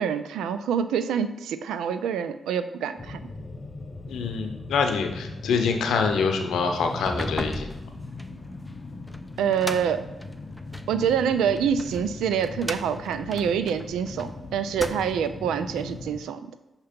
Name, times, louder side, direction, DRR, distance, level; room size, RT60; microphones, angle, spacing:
voice 1, 0.0-3.2 9.4-10.0 10.9-16.4, right 7 dB, 90° right, 12 dB, 0.3 m, -26 dB
sound 1, 3.0-16.2, left 3 dB, 45° left, 0.7 m, -39 dB
voice 2, 4.1-7.7, left 5 dB, 85° left, 5 dB, 0.7 m, -25 dB
sound 2, 6.9-11.0 11.6-14.3 14.6-15.4, equal, 5° left, 0.4 m, -37 dB
6.7 x 2.9 x 5.1 m, 1.0 s
cardioid pair, 55°, 0 cm